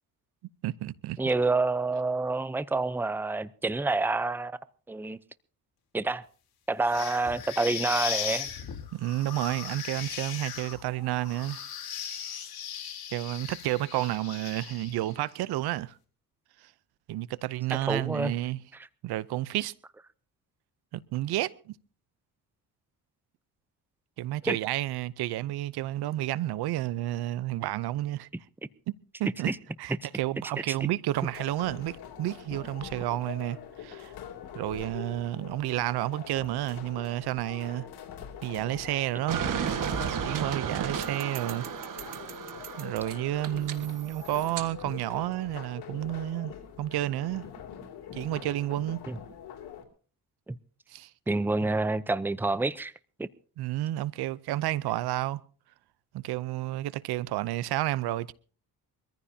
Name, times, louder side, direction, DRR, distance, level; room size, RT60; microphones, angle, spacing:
voice 1, 0.6-1.2 8.9-11.6 13.1-16.0 17.1-18.6 19.0-19.7 20.9-21.7 24.2-28.3 29.2-29.5 29.8-34.1 34.5-37.9 38.4-39.4 40.2-41.7 42.8-47.5 48.1-49.0 50.9-51.1 53.6-55.4 56.1-58.3, right 15 dB, 80° right, 0.7 m, -31 dB
voice 2, 1.2-4.5 4.9-5.2 5.9-6.2 6.7-8.5 17.7-18.3 24.4-24.6 29.5-29.6 49.1-49.2 50.5-50.6 51.3-52.9 53.2-53.3, right 3 dB, 5° right, 0.6 m, -28 dB
sound 1, 6.8-15.1, left 9 dB, 70° left, 3.6 m, -37 dB
sound 2, 31.1-49.8, left 9 dB, 85° left, 3.0 m, -44 dB
sound 3, 39.3-44.7, right 8 dB, 55° right, 1.7 m, -34 dB
24.0 x 14.5 x 2.8 m
cardioid pair, 85°, 38 cm